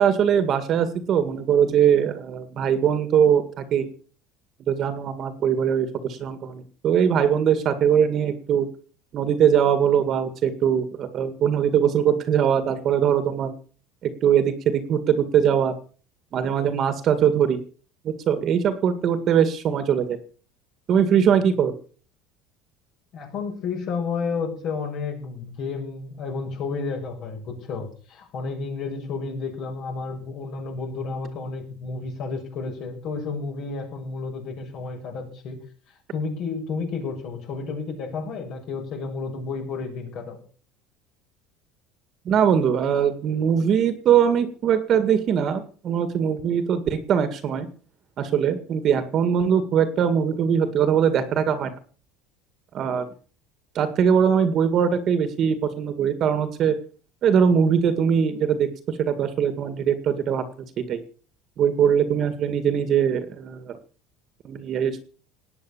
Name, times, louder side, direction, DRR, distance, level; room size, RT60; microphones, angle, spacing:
voice 1, 0.0-3.9 4.7-8.7 9.1-13.5 14.0-15.7 16.3-17.6 18.0-20.2 20.9-21.7 42.3-47.7 48.2-51.7 52.7-53.0 53.8-56.8 57.2-60.4 60.8-61.0 61.6-63.8 64.4-65.0, right 8 dB, 35° right, 10 dB, 2.0 m, -21 dB
voice 2, 23.1-35.6 36.1-40.4, left 4 dB, 45° left, 0 dB, 6.9 m, -31 dB
18.5 x 9.8 x 7.2 m, 0.42 s
cardioid pair, 155°, 0 cm